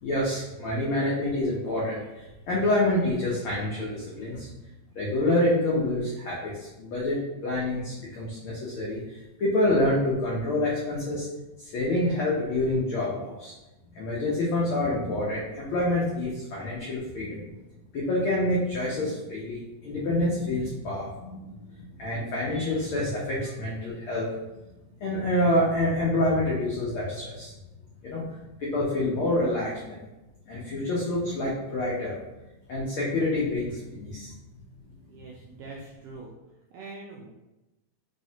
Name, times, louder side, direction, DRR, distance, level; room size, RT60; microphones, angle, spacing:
voice 1, 0.0-4.5 4.9-11.3 11.6-13.5 13.9-17.4 17.9-24.3 25.0-27.5 28.0-28.2 28.6-30.0 30.5-32.2 32.7-34.3, left 1 dB, 90° left, -5 dB, 1.1 m, -27 dB
voice 2, 35.1-36.3 36.7-37.3, right 3 dB, 85° right, -3 dB, 1.3 m, -43 dB
4.0 x 3.2 x 2.8 m, 1.0 s
omnidirectional pair, 3.3 m